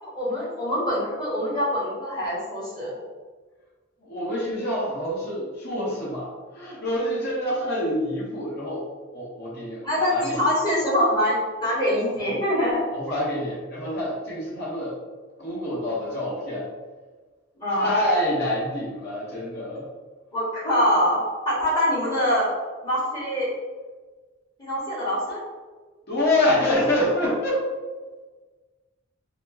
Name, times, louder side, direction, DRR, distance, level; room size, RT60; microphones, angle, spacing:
voice 1, 0.0-2.9 9.8-12.8 17.6-17.9 20.3-21.2 21.4-22.5 22.8-23.5 24.6-25.4, equal, 20° left, -8 dB, 1.5 m, -24 dB
voice 2, 4.0-8.8 9.1-10.4 12.2-12.4 12.9-14.9 15.4-16.7 17.7-19.9 26.1-27.7, left 1 dB, 55° left, -6 dB, 1.0 m, -26 dB
4.1 x 2.1 x 2.8 m, 1.3 s
head